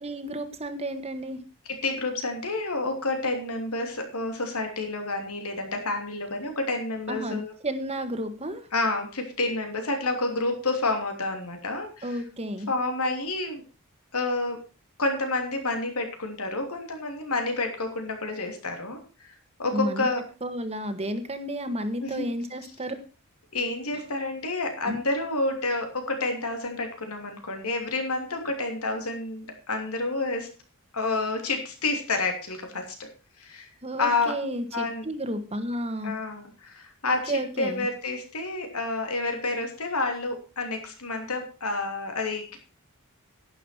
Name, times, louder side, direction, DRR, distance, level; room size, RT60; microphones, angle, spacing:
voice 1, 0.0-1.4 7.1-8.6 12.0-12.7 19.7-20.1 20.4-22.9 24.8-25.0 33.8-36.1 37.1-37.9, right 1 dB, 30° right, 8 dB, 1.6 m, -32 dB
voice 2, 1.8-7.5 8.7-12.2 12.7-13.6 14.1-14.6 15.0-19.3 19.6-20.2 22.0-22.3 23.5-30.5 30.9-33.1 33.4-33.7 34.0-34.4 34.7-35.0 36.0-42.6, left 2 dB, 85° left, 4 dB, 3.1 m, -29 dB
11.5 x 9.9 x 4.5 m, 0.33 s
head